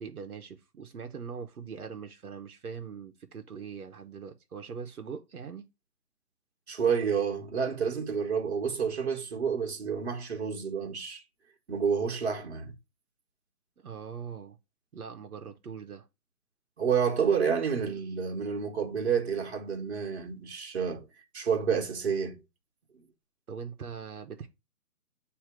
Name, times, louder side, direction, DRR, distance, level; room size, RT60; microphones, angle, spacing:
voice 1, 0.0-5.7 13.8-14.6 14.9-16.1 23.5-24.5, right 6 dB, 70° right, 1.0 m, -41 dB
voice 2, 6.7-11.2 11.7-12.7 16.8-21.0 21.3-22.4, right 6 dB, 45° right, 1.3 m, -29 dB
7.9 x 2.9 x 4.9 m
hypercardioid pair, 170°, 45 cm